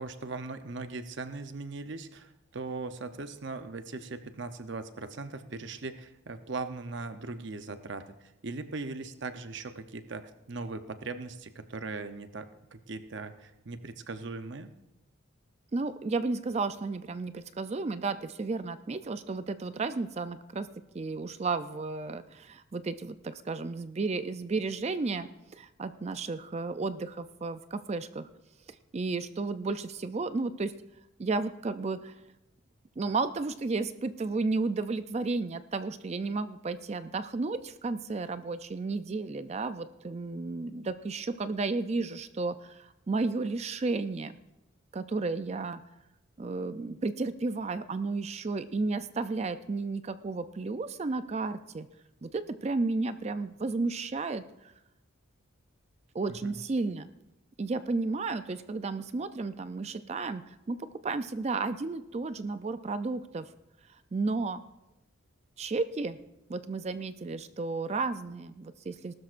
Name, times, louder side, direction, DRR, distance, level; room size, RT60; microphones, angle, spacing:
voice 1, 0.0-14.7 56.3-56.6, right 3 dB, 55° right, 9 dB, 0.7 m, -39 dB
voice 2, 15.7-28.3 28.9-30.7 31.2-32.1 33.0-44.4 44.9-45.8 46.4-51.9 52.2-54.7 56.1-57.1 57.6-63.5 64.1-64.6 65.6-66.2 66.5-69.1, right 3 dB, 30° right, 12 dB, 0.4 m, -33 dB
19.5 x 12.5 x 2.5 m, 0.92 s
head